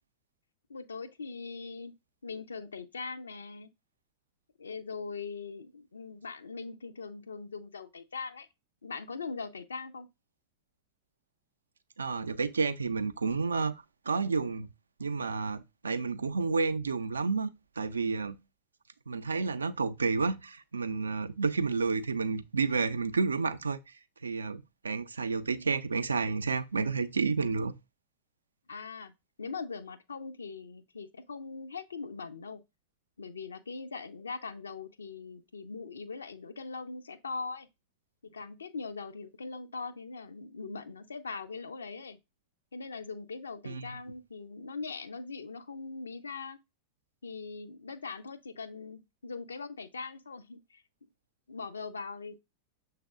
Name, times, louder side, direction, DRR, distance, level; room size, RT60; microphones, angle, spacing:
voice 1, 0.7-1.9 2.2-3.7 4.6-8.5 8.8-10.1 28.7-29.1 29.4-32.6 33.2-37.7 38.3-42.2 42.7-46.6 47.2-50.8 51.5-52.4, left 4 dB, 70° left, 0.5 m, -41 dB
voice 2, 12.0-14.7 15.0-17.5 17.8-18.4 19.1-23.9 24.2-27.7 43.6-44.0, right 4 dB, 75° right, 0.4 m, -30 dB
6.5 x 3.4 x 2.3 m
figure-of-eight pair, 90°, 0 cm